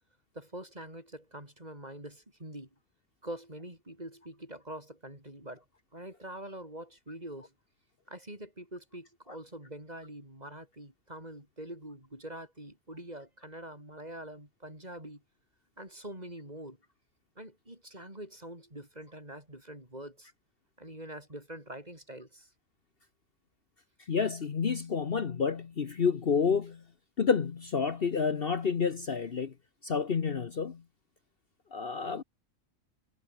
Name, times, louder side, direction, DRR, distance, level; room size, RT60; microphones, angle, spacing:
voice 1, 0.3-2.7 3.2-5.6 5.9-7.5 8.1-15.2 15.8-16.8 17.4-20.3 20.8-22.5, right 1 dB, 30° right, 7.9 m, -45 dB
voice 2, 24.1-26.8 27.2-29.5 29.8-30.8 31.7-32.2, left 6 dB, 45° left, 1.2 m, -29 dB
omnidirectional pair, 1.4 m